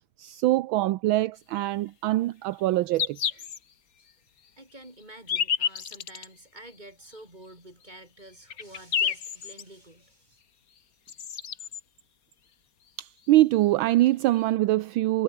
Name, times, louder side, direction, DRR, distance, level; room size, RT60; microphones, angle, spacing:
voice 1, 0.2-3.2 13.0-15.2, right 16 dB, 75° right, 1.4 m, -23 dB
sound 1, 1.5-1.7 2.5-2.6 2.9-3.6 4.1-4.2 5.0-6.3 7.1-7.2 7.9-8.0 8.3-9.6 10.8-10.9 11.1-11.8 13.2-13.3 13.6-13.7 14.3-14.4, left 7 dB, 45° left, 1.6 m, -30 dB
voice 2, 4.6-10.4, right 1 dB, 20° right, 7.1 m, -49 dB
omnidirectional pair, 2.3 m